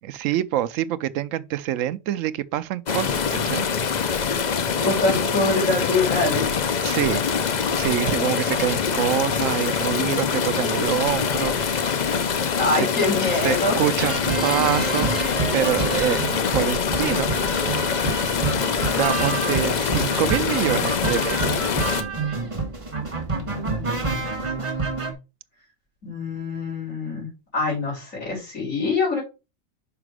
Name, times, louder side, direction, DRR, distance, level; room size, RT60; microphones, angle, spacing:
voice 1, 0.1-3.6 6.8-7.2 7.8-12.1 13.4-16.2 16.5-17.3 17.7-17.8 18.9-21.5, right 12 dB, 80° right, 0.9 m, -26 dB
sound 1, 2.9-22.0, left 6 dB, 45° left, 0.6 m, -24 dB
voice 2, 4.8-6.4 12.6-13.8 14.4-14.6 19.7-19.9 23.1-24.4 26.0-29.2, left 2 dB, 75° left, 3.9 m, -25 dB
sound 2, 14.0-25.1, right 4 dB, 25° right, 1.2 m, -28 dB
6.0 x 4.9 x 4.8 m
omnidirectional pair, 1.4 m